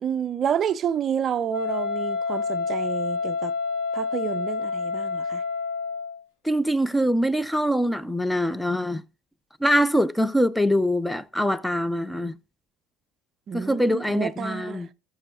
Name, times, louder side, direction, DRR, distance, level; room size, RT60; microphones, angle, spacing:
voice 1, 0.0-3.5 3.9-5.4 13.5-14.9, right 8 dB, 45° right, 0.5 m, -29 dB
Wind instrument woodwind instrument, 1.5-6.2, left 4 dB, 80° left, 5.2 m, -28 dB
voice 2, 6.4-9.0 9.6-12.3 13.5-14.9, equal, 5° left, 0.7 m, -23 dB
18.0 x 7.0 x 2.5 m
hypercardioid pair, 65°, 0 cm